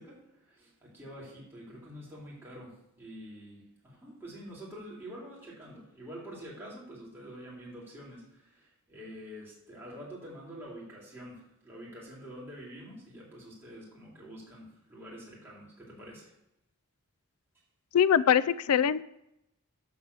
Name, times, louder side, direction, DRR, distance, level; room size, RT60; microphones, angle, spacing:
voice 1, 0.0-16.3, equal, 10° right, -6 dB, 3.5 m, -47 dB
voice 2, 17.9-19.0, left 8 dB, 80° left, 18 dB, 0.4 m, -23 dB
12.5 x 4.2 x 6.9 m, 0.84 s
head